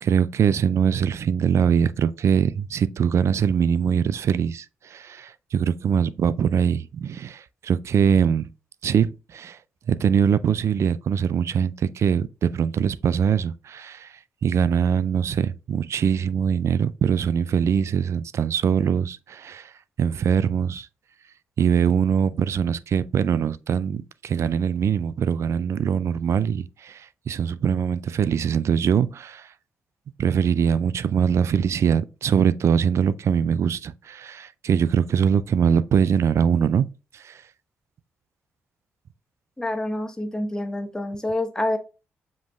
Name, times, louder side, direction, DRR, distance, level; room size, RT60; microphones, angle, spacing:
voice 1, 0.0-4.7 4.9-8.5 8.8-9.6 9.9-14.1 14.4-19.7 20.0-20.9 21.6-29.5 30.2-36.9 37.2-37.3, right 7 dB, 55° right, 0.3 m, -22 dB
voice 2, 39.6-41.8, left 1 dB, 10° left, 1.0 m, -27 dB
7.2 x 3.1 x 2.3 m
hypercardioid pair, 45°, 6 cm